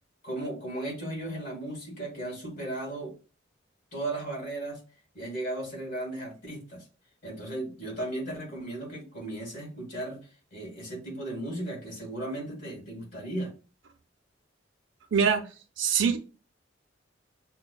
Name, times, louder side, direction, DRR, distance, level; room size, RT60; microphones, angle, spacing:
voice 1, 0.2-3.1 3.9-4.8 5.1-6.8 7.2-13.5, right 1 dB, 45° left, -1 dB, 1.9 m, -36 dB
voice 2, 15.1-15.4 15.8-16.2, right 7 dB, 85° right, 7 dB, 0.6 m, -23 dB
5.6 x 2.2 x 2.2 m, 0.34 s
head